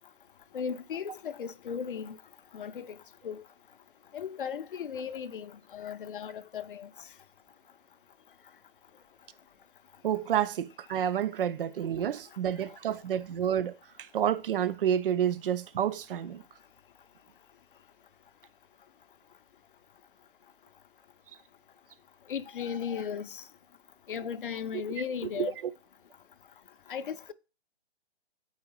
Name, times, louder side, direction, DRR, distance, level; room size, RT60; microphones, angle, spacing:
voice 1, 0.5-2.2 2.5-3.0 3.2-3.4 4.1-6.9 22.3-23.4 24.1-25.6 26.9-27.3, left 7 dB, 55° left, 0.4 m, -36 dB
voice 2, 10.0-13.7 14.1-16.4 25.4-25.5, right 9 dB, 55° right, 0.4 m, -29 dB
4.8 x 4.6 x 5.5 m
hypercardioid pair, 165°, 32 cm